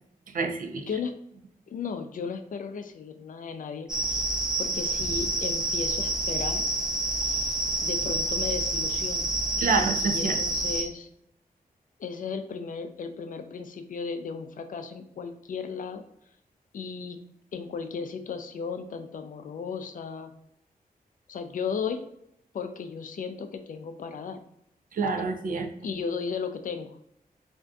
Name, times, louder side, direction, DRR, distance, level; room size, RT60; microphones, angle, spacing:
voice 1, 0.3-0.8 9.6-10.4 24.9-25.7, right 4 dB, 65° right, 4 dB, 0.4 m, -27 dB
voice 2, 1.7-4.2 4.6-6.7 7.2-9.3 10.0-11.1 12.0-16.0 16.7-17.2 17.5-20.3 21.3-22.0 22.5-24.4 25.8-27.0, left 5 dB, 60° left, 7 dB, 0.4 m, -35 dB
sound 1, 3.9-10.8, right 1 dB, 5° right, 0.5 m, -28 dB
3.5 x 2.5 x 2.2 m, 0.75 s
wide cardioid pair, 90°, 15 cm